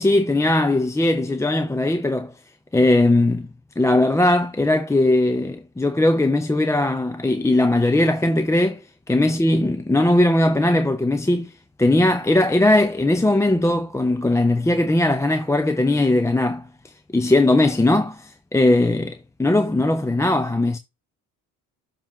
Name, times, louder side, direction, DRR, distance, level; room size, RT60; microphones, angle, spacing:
voice 1, 0.0-2.3 2.7-3.5 3.8-8.8 9.1-11.5 11.8-16.6 17.1-20.8, left 1 dB, 10° left, 0.6 m, -19 dB
7.1 x 3.1 x 5.8 m
cardioid pair, 85°, 34 cm